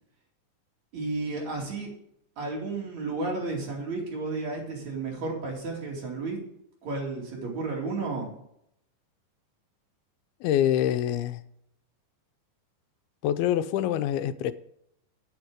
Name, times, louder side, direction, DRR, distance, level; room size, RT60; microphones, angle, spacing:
voice 1, 0.9-1.9 2.4-6.4 6.8-8.4, right 3 dB, 50° right, 3.6 m, -32 dB
voice 2, 10.4-11.4 13.2-14.5, left 11 dB, 85° left, 2.5 m, -25 dB
9.6 x 8.7 x 4.9 m
omnidirectional pair, 4.4 m